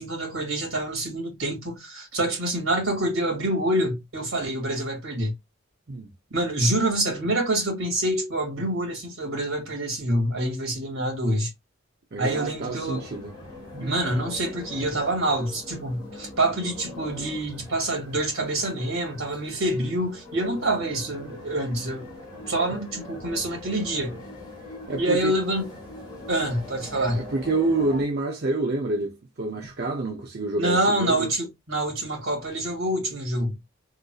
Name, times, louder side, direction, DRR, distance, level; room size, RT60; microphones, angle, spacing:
voice 1, 0.0-5.3 6.3-11.5 12.2-13.1 13.8-22.1 22.5-24.2 25.0-25.7 26.3-27.2 30.6-33.6, right 1 dB, 75° right, 2.2 m, -26 dB
voice 2, 12.1-13.3 13.7-14.1 24.9-25.3 26.9-31.3, right 2 dB, 45° right, 0.6 m, -28 dB
sound 1, 12.2-28.0, left 1 dB, 20° left, 1.3 m, -42 dB
3.8 x 2.6 x 2.3 m
head